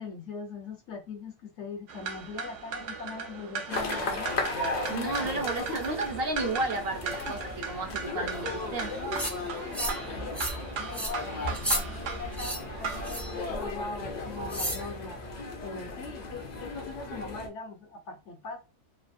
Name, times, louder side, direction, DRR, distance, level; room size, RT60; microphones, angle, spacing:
voice 1, 0.0-4.3 4.9-5.7 7.2-7.3 8.3-8.5 8.9-9.2 9.5-11.3 11.7-15.2 15.6-18.7, left 3 dB, 75° left, 1.1 m, -41 dB
sound 1, 1.9-13.5, right 6 dB, 85° right, 0.9 m, -38 dB
sound 2, 3.7-17.5, left 2 dB, 45° left, 0.6 m, -36 dB
voice 2, 4.9-7.4 7.7-9.0, right 3 dB, 60° right, 0.7 m, -32 dB
sound 3, 9.1-9.3 9.7-10.0 10.3-10.6 10.9-11.1 11.5-11.8 12.3-12.6 13.0-13.3 14.5-14.8, equal, ahead, 0.3 m, -32 dB
3.2 x 2.2 x 2.5 m
omnidirectional pair, 1.2 m